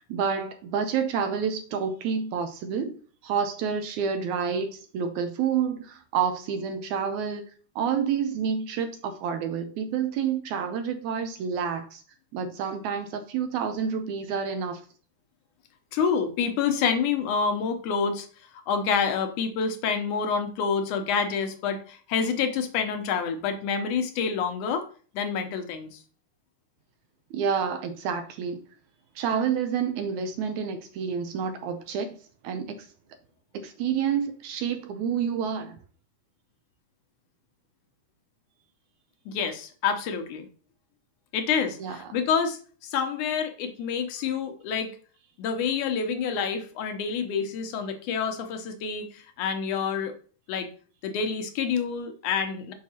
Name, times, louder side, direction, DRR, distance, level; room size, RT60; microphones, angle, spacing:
voice 1, 0.1-3.0 3.2-7.4 7.8-12.0 12.3-14.8 27.3-28.6 29.2-32.2 32.4-32.9 33.6-35.8 41.8-42.1, right 7 dB, 75° right, 1.9 m, -29 dB
voice 2, 15.9-18.3 18.7-24.8 25.1-26.0 39.3-40.5 41.3-44.9 45.4-50.1 50.5-50.7 51.0-52.7, left 6 dB, 75° left, 2.2 m, -28 dB
6.3 x 5.6 x 2.8 m
omnidirectional pair, 3.7 m